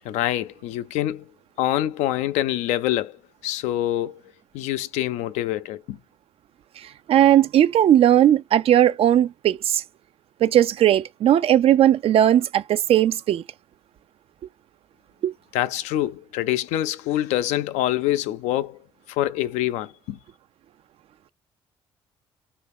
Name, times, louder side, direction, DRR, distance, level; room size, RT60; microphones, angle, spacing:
voice 1, 0.0-1.3 1.6-3.2 3.4-4.2 4.5-6.0 15.5-18.8 19.1-20.2, left 13 dB, 80° left, 0.4 m, -25 dB
voice 2, 7.1-9.8 10.4-13.4 15.2-15.3, right 11 dB, 55° right, 0.4 m, -17 dB
2.9 x 2.4 x 3.7 m
supercardioid pair, 60°, 12 cm